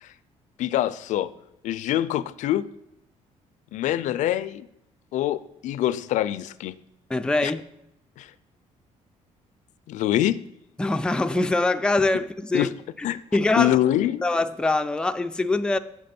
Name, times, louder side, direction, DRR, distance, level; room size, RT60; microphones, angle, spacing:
voice 1, 0.6-1.3 1.6-2.7 3.7-4.7 5.1-6.8 7.4-7.5 8.2-8.3 9.9-10.4 12.5-12.7 13.0-13.2 13.6-14.2, left 13 dB, 75° left, 0.4 m, -24 dB
voice 2, 7.1-7.6 10.8-12.7 13.0-13.1 13.3-13.8 14.2-15.8, left 2 dB, 5° left, 0.3 m, -23 dB
8.4 x 6.4 x 4.3 m
cardioid pair, 110°, 13 cm